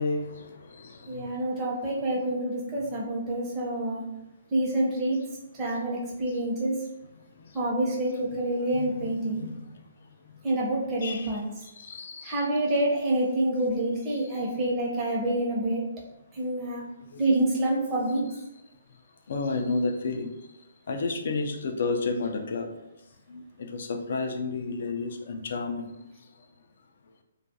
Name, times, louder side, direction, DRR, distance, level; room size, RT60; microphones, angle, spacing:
voice 1, 0.0-1.3 7.2-7.6 8.7-9.7 10.3-10.4 11.0-12.5 14.2-14.5 17.0-17.2 19.3-20.3 20.9-22.7 23.3-25.9, left 3 dB, 65° left, 5 dB, 0.4 m, -32 dB
voice 2, 1.1-4.0 4.5-5.2 5.6-6.8 7.5-9.4 10.4-11.4 12.2-15.8 16.4-16.8 17.2-18.2, right 1 dB, 20° right, -4 dB, 0.7 m, -27 dB
2.3 x 2.2 x 2.7 m, 0.89 s
hypercardioid pair, 145°, 0 cm